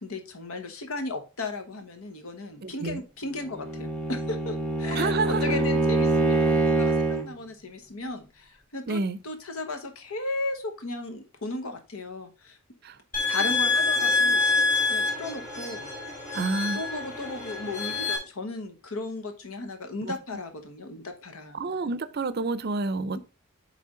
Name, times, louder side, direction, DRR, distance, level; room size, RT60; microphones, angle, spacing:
voice 1, 0.0-12.6 13.3-14.4 14.9-15.9 16.7-21.6, left 2 dB, 80° left, 1.2 m, -35 dB
voice 2, 2.6-3.0 4.9-5.6 8.9-9.2 12.8-13.0 16.3-16.8 20.0-20.1 21.5-23.2, right 3 dB, 45° right, 0.5 m, -29 dB
Bowed string instrument, 3.4-7.3, right 2 dB, 5° left, 0.7 m, -25 dB
sound 1, 13.1-18.2, left 3 dB, 35° left, 2.7 m, -26 dB
9.2 x 3.4 x 3.8 m
head